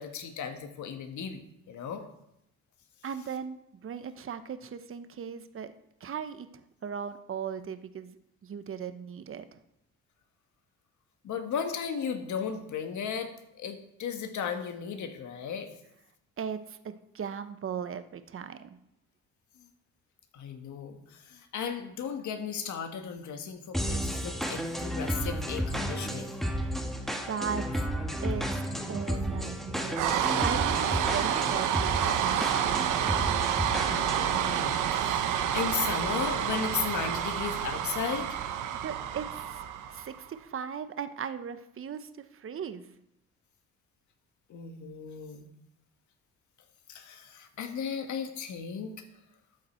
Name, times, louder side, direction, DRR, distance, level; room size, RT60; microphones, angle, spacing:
voice 1, 0.0-2.0 11.2-13.3 13.6-15.7 20.3-26.3 33.9-38.4 44.5-45.5 46.9-49.0, left 7 dB, 70° left, 6 dB, 1.6 m, -35 dB
voice 2, 3.0-3.6 3.8-5.7 6.0-6.5 6.8-9.6 16.4-18.8 26.6-26.8 27.3-27.8 28.2-30.0 30.4-32.9 38.8-39.6 39.9-42.9, right 7 dB, 45° right, 11 dB, 0.9 m, -38 dB
sound 1, 23.7-34.4, equal, ahead, 1.5 m, -33 dB
sound 2, 29.9-40.2, right 9 dB, 85° right, 1.0 m, -29 dB
12.5 x 7.4 x 4.4 m, 0.80 s
cardioid pair, 90°, 30 cm